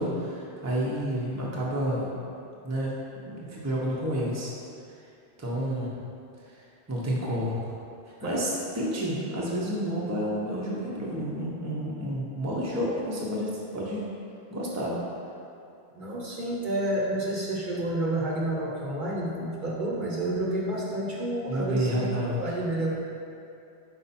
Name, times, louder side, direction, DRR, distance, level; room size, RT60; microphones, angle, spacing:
voice 1, 0.0-2.1 2.6-2.9 3.2-4.5 5.4-5.9 6.5-6.6 6.9-7.6 8.0-14.0 14.5-14.9 21.5-22.4, equal, 15° right, -5 dB, 0.8 m, -30 dB
voice 2, 8.2-8.5 15.9-22.9, right 1 dB, 50° right, -5 dB, 0.9 m, -30 dB
5.4 x 4.6 x 4.2 m, 2.6 s
omnidirectional pair, 1.1 m